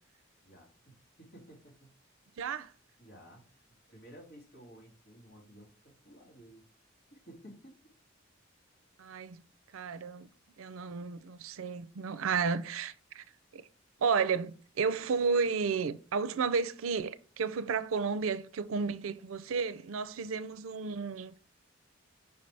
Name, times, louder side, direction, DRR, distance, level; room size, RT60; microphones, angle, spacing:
voice 1, 0.4-1.9 3.0-3.6 3.9-6.6 7.1-7.8, equal, 55° left, 2.7 m, -54 dB
voice 2, 2.4-2.7 9.0-9.4 9.7-10.3 10.6-13.2 13.5-13.7 14.0-21.3, right 5 dB, 80° right, 0.5 m, -32 dB
5.4 x 5.3 x 3.3 m
head